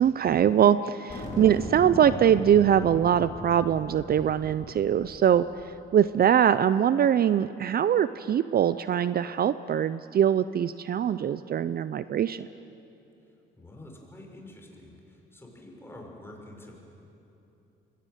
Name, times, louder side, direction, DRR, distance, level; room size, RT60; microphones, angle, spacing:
voice 1, 0.0-5.5 5.9-12.5, right 9 dB, 50° right, 14 dB, 0.6 m, -22 dB
sound 1, 1.1-5.8, left 1 dB, 35° left, 5.1 m, -39 dB
voice 2, 13.6-16.8, left 1 dB, 10° left, 0 dB, 6.0 m, -47 dB
23.0 x 18.5 x 9.2 m, 2.9 s
cardioid pair, 90°, 20 cm